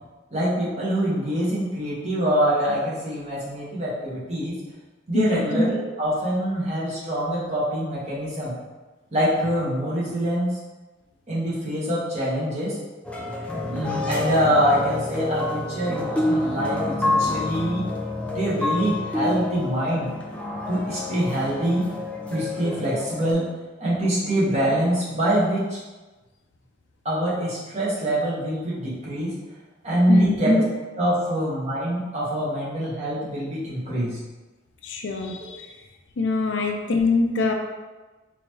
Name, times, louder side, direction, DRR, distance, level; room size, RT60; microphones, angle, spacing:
voice 1, 0.3-4.5 5.1-8.5 9.1-10.5 11.3-12.8 13.6-17.8 18.2-20.1 20.7-21.9 22.3-23.5 23.8-25.8 27.0-29.3 29.8-30.6 31.0-34.2, equal, 40° right, -8 dB, 1.3 m, -24 dB
voice 2, 5.1-5.5 13.2-13.3 30.1-30.4 34.8-35.7 36.2-37.5, left 4 dB, 90° left, 3 dB, 0.5 m, -24 dB
sound 1, 13.0-23.3, left 2 dB, 5° left, 0.4 m, -28 dB
4.1 x 2.8 x 3.0 m, 1.2 s
head